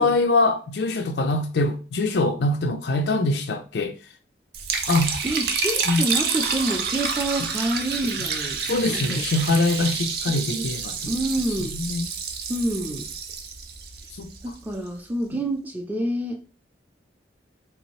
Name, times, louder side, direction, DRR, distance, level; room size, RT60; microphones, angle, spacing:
voice 1, 0.0-4.0 4.9-5.2 5.9-6.1 8.6-11.1 11.7-12.1 14.1-14.3, left 2 dB, 65° left, 0.4 m, -23 dB
Liquid, 4.5-14.7, right 5 dB, 60° right, 0.5 m, -29 dB
voice 2, 5.2-9.3 10.3-10.7 11.1-11.8 12.5-13.1 14.4-16.4, right 1 dB, 10° right, 0.5 m, -28 dB
3.5 x 2.7 x 3.0 m
head